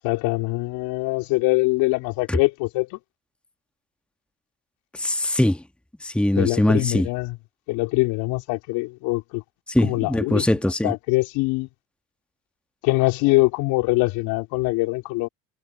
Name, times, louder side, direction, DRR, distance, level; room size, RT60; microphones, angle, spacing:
voice 1, 0.0-3.0 6.4-7.4 7.7-9.4 9.8-10.5 10.8-11.7 12.8-15.3, left 23 dB, 75° left, 3.8 m, -23 dB
voice 2, 4.9-5.6 6.0-7.1 9.7-10.9, left 1 dB, 5° left, 1.5 m, -21 dB
hypercardioid pair, 75°, 36 cm